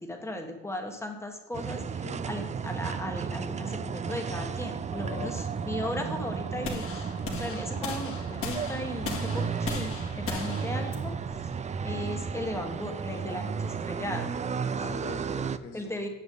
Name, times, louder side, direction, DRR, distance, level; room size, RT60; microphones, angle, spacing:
voice 1, 0.0-11.2 11.8-14.3 15.7-16.1, left 1 dB, 10° left, 3 dB, 1.4 m, -36 dB
sound 1, 1.5-15.6, right 6 dB, 25° right, 0.4 m, -33 dB
voice 2, 5.0-5.4 9.2-9.5 14.7-16.1, left 6 dB, 85° left, 2 dB, 2.1 m, -43 dB
sound 2, 6.6-12.7, left 4 dB, 45° left, 2.1 m, -38 dB
9.5 x 7.2 x 3.9 m, 1.1 s
cardioid pair, 125°, 30 cm